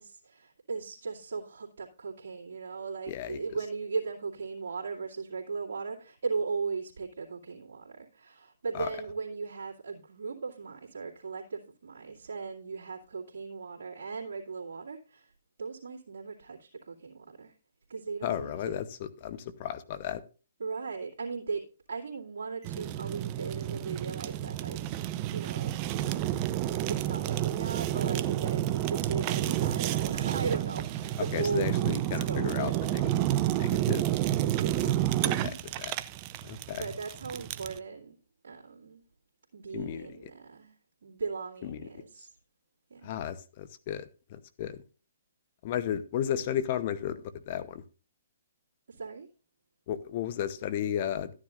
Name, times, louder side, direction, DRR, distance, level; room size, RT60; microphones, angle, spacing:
voice 1, 0.0-15.3 15.6-17.5 17.9-18.9 20.6-26.1 26.9-31.7 32.2-32.8 34.6-35.6 36.4-38.2 38.4-39.0 39.5-40.8 41.0-42.3 42.9-43.1 48.9-49.3, right 4 dB, 70° right, 2.4 m, -38 dB
voice 2, 3.1-3.6 8.7-8.9 18.2-20.2 31.3-33.0 33.6-34.0 35.2-36.0 36.4-36.9 39.7-40.3 41.6-41.8 43.0-44.8 45.6-47.2 47.5-47.8 49.9-51.3, left 10 dB, 45° left, 0.9 m, -34 dB
Fire, 22.6-37.8, right 13 dB, 35° right, 0.6 m, -30 dB
13.5 x 9.7 x 2.5 m
hypercardioid pair, 135°, 0 cm